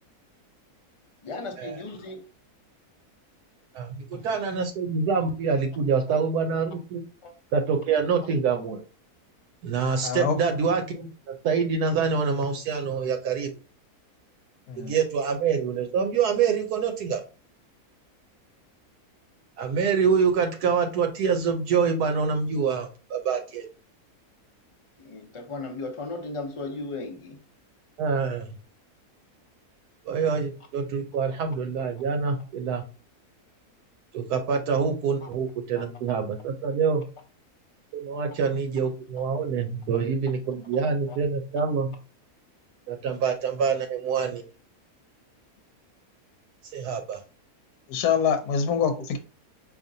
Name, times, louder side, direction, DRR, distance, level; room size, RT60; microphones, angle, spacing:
voice 1, 1.2-2.3 4.1-4.3 7.2-7.3 25.0-27.4 31.3-31.4 35.2-35.3 35.8-35.9 40.7-41.2, left 3 dB, 35° left, 0.5 m, -36 dB
voice 2, 3.7-7.0 7.5-8.8 9.6-13.5 14.8-17.2 19.6-23.7 28.0-28.5 30.1-32.8 34.1-37.0 37.9-41.9 42.9-44.4 46.7-47.2, right 5 dB, 80° right, 1.1 m, -26 dB
voice 3, 10.0-10.4 14.7-14.9 47.9-49.2, left 7 dB, 80° left, 1.2 m, -25 dB
4.9 x 2.8 x 2.6 m
omnidirectional pair, 1.6 m